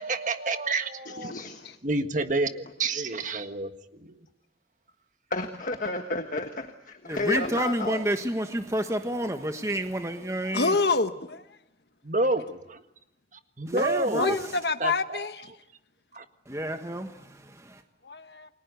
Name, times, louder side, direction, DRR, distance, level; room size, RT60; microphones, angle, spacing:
voice 1, 0.0-1.3 1.8-3.7 4.0-4.1 12.0-12.8 13.6-14.4 14.8-15.3 16.1-16.2, right 2 dB, 45° right, 1.7 m, -29 dB
voice 2, 1.1-1.6 5.3-8.0, left 2 dB, 50° left, 1.5 m, -32 dB
voice 3, 7.0-10.8 13.7-14.6 16.5-17.8, right 1 dB, 15° right, 1.4 m, -30 dB
voice 4, 10.5-11.4 14.1-15.5 18.0-18.5, left 3 dB, 70° left, 1.3 m, -27 dB
30.0 x 22.0 x 8.2 m
head